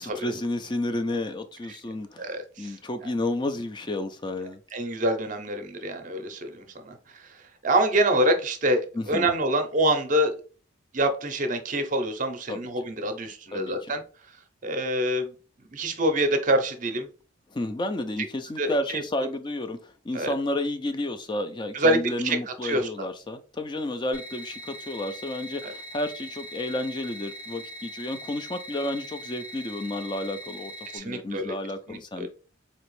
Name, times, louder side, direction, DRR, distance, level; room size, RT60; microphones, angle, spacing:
voice 1, 0.0-4.6 8.9-9.3 12.5-12.6 13.5-13.9 17.5-32.3, left 1 dB, 25° left, 0.4 m, -31 dB
voice 2, 2.2-3.1 4.7-10.3 10.9-14.0 14.6-15.3 15.6-17.1 18.6-19.0 20.1-20.3 21.7-22.0 22.2-22.9 25.6-25.7 30.9-31.5 31.9-32.3, right 1 dB, 40° right, 0.6 m, -26 dB
sound 1, 24.1-31.0, equal, 85° left, 2.0 m, -41 dB
4.3 x 2.9 x 3.1 m
head